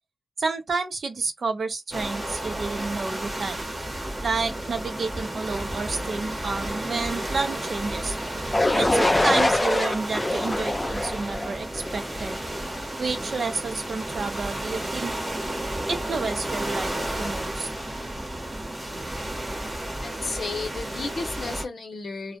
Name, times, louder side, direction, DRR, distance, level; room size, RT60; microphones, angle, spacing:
voice 1, 0.4-3.6 4.2-8.2 8.8-12.4 13.0-15.1 15.9-16.9 17.2-17.7, right 4 dB, 70° right, 0.5 m, -30 dB
sound 1, 1.9-21.6, right 1 dB, 20° right, 0.8 m, -32 dB
sound 2, 8.5-12.4, left 1 dB, 20° left, 0.3 m, -24 dB
voice 2, 20.0-22.4, left 3 dB, 90° left, 0.7 m, -33 dB
2.2 x 2.0 x 2.7 m
wide cardioid pair, 115°, 0 cm